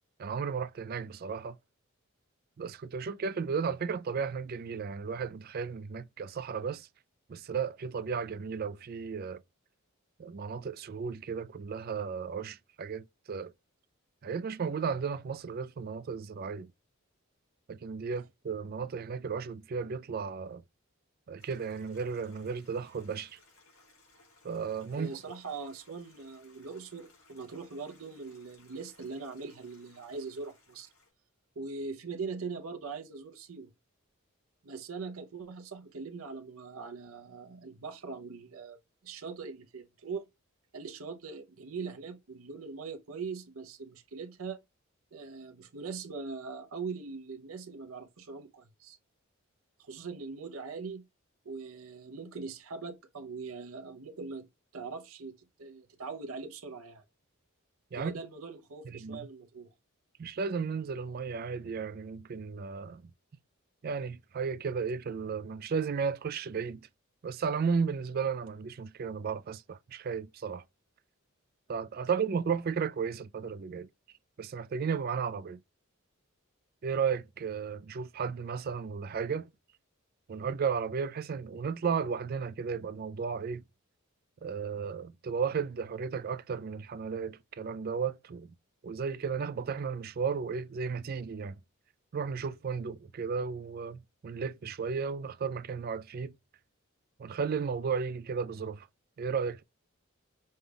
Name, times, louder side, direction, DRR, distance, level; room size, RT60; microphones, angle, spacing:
voice 1, 0.2-1.6 2.6-6.9 7.3-9.4 10.2-13.5 14.2-16.7 17.7-20.6 21.3-23.4 24.4-25.1 57.9-58.2 58.8-59.3 60.2-63.0 63.8-66.8 67.2-70.6 71.7-73.9 74.4-75.6 76.8-79.5 80.3-83.6 84.4-88.5 88.8-91.6 92.1-96.3 97.2-98.9 99.2-99.6, right 6 dB, 45° right, 0.3 m, -34 dB
Stream, 21.4-31.1, left 3 dB, 75° left, 2.6 m, -63 dB
voice 2, 24.9-30.9 31.6-33.7 34.6-38.8 39.0-40.2 40.7-44.6 45.1-49.0 49.8-51.0 51.4-54.5 54.7-57.0 57.9-59.7, right 4 dB, 80° right, 0.7 m, -41 dB
5.4 x 2.3 x 3.3 m
head